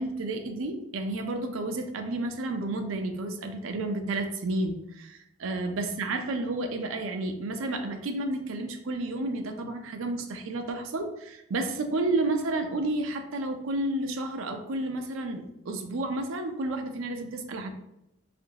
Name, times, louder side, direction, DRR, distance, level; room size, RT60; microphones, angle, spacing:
voice 1, 0.0-17.7, right 2 dB, 80° right, 6 dB, 0.4 m, -31 dB
2.9 x 2.5 x 2.7 m, 0.86 s
head